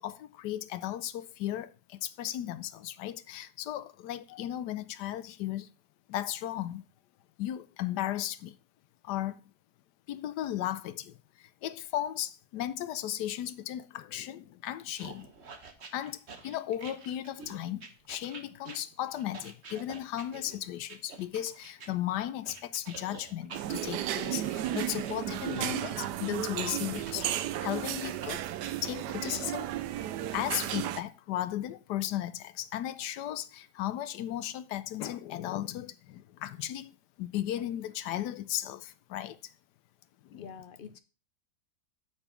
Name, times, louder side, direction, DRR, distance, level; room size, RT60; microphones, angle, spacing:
voice 1, 0.0-5.7 6.1-6.8 7.4-8.5 9.0-9.4 10.1-15.3 15.9-27.3 27.6-28.4 28.8-29.7 30.3-36.9 37.2-39.4 40.2-40.5, left 12 dB, 85° left, 1.2 m, -35 dB
sound 1, 15.0-21.9 22.4-27.6 28.2-28.7, right 4 dB, 45° right, 1.3 m, -48 dB
sound 2, 23.5-31.0, right 12 dB, 85° right, 1.2 m, -34 dB
voice 2, 40.3-41.0, left 6 dB, 70° left, 0.5 m, -46 dB
7.0 x 6.0 x 5.7 m
omnidirectional pair, 1.7 m